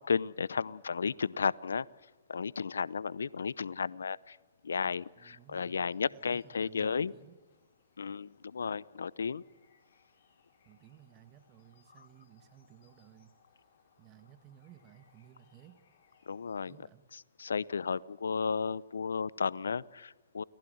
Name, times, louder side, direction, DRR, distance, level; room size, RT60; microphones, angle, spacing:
voice 1, 0.0-1.8 2.3-4.4 4.6-7.1 8.0-9.4 16.3-16.7 17.4-20.4, left 5 dB, 80° left, 22 dB, 0.7 m, -33 dB
sound 1, 4.9-16.7, left 6 dB, 50° left, 6.5 m, -70 dB
voice 2, 5.2-7.4 10.6-13.3 14.0-15.8 16.7-17.1, right 12 dB, 30° right, 9 dB, 1.8 m, -57 dB
29.5 x 19.5 x 7.9 m, 1.3 s
hypercardioid pair, 125°, 0 cm